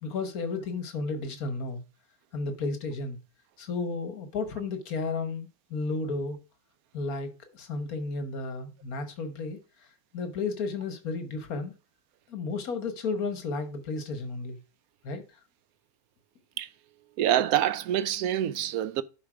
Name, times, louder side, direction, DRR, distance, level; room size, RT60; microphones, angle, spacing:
voice 1, 0.0-1.8 2.3-3.2 3.6-6.4 6.9-9.6 10.1-11.7 12.3-14.6 15.0-15.2, left 3 dB, 75° left, 1.7 m, -33 dB
voice 2, 17.2-19.0, right 11 dB, 75° right, 1.1 m, -26 dB
10.5 x 4.2 x 5.0 m
omnidirectional pair, 1.6 m